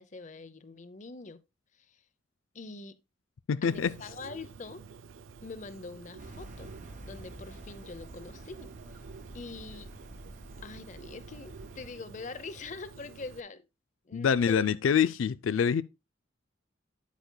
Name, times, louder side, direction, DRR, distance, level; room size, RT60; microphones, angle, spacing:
voice 1, 0.0-1.4 1.9-2.0 2.5-3.0 3.6-4.8 5.4-6.7 7.0-8.7 9.3-9.9 10.6-13.7 14.1-14.6, left 3 dB, 40° left, 0.7 m, -44 dB
voice 2, 3.5-3.9 14.1-15.8, left 7 dB, 90° left, 0.4 m, -25 dB
Bird, 3.7-13.4, right 5 dB, 85° right, 0.4 m, -50 dB
sound 1, 6.2-11.9, right 1 dB, 40° right, 1.1 m, -48 dB
9.5 x 8.3 x 2.2 m
head